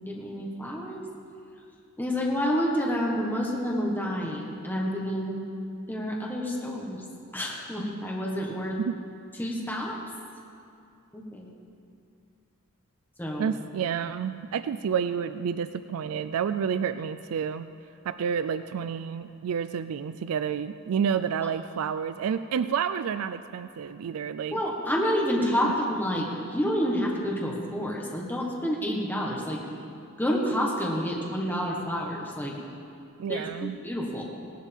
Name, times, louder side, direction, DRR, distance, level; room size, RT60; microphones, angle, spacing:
voice 1, 0.1-1.0 2.0-5.4 5.9-7.0 7.3-8.8 9.4-10.0 11.1-11.5 13.2-13.5 24.5-29.6 30.2-32.6 33.3-34.2, equal, 10° left, -3 dB, 1.4 m, -29 dB
voice 2, 13.4-17.7 18.0-24.6 33.2-33.8, right 7 dB, 70° right, 11 dB, 0.4 m, -29 dB
17.5 x 11.5 x 3.6 m, 2.5 s
head